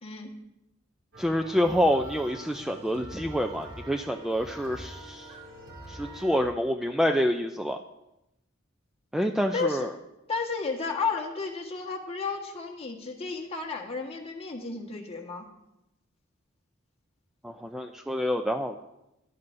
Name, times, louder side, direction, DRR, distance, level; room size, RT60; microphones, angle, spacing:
voice 1, 0.0-0.3 9.5-9.9 10.3-15.4, left 4 dB, 30° left, 0 dB, 1.4 m, -32 dB
sound 1, 1.1-6.5, right 1 dB, 75° right, 2.6 m, -44 dB
voice 2, 1.2-5.3 5.9-7.8 9.1-9.9 17.4-18.7, equal, ahead, 4 dB, 0.4 m, -27 dB
16.0 x 11.0 x 2.6 m, 0.90 s
head